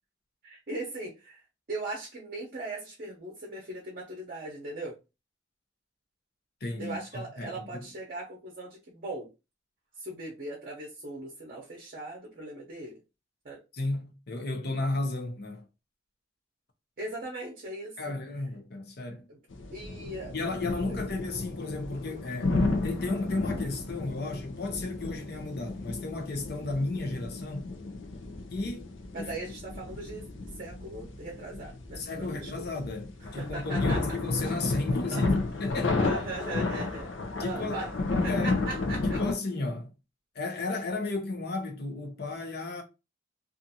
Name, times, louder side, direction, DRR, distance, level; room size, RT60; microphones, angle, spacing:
voice 1, 0.4-1.4 1.7-5.0 6.8-9.3 10.0-13.0 13.4-13.6 17.0-18.0 19.3-19.4 19.7-20.3 20.9-21.0 29.1-30.2 30.6-32.6 33.4-34.1 34.4-34.5 35.1-35.3 36.0-37.1 37.4-37.9 38.2-39.2, right 2 dB, 45° right, 0.7 m, -39 dB
voice 2, 6.6-7.9 13.7-15.6 18.0-19.3 20.3-22.6 22.8-27.7 28.5-29.3 32.0-36.0 37.4-37.8 38.3-38.6 39.0-39.9 40.3-42.8, left 2 dB, 55° left, 0.7 m, -34 dB
sound 1, 19.5-39.4, left 3 dB, 90° left, 0.5 m, -32 dB
2.5 x 2.5 x 2.7 m
head